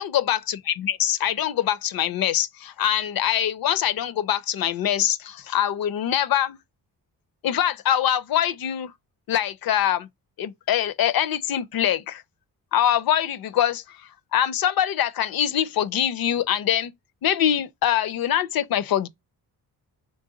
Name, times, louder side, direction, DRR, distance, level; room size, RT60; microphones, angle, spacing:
voice 1, 0.0-6.6 7.4-8.9 9.3-10.1 10.4-12.2 12.7-14.0 14.3-16.9 17.2-19.1, left 10 dB, 60° left, 0.5 m, -23 dB
4.0 x 3.3 x 3.7 m
cardioid pair, 70°, 40 cm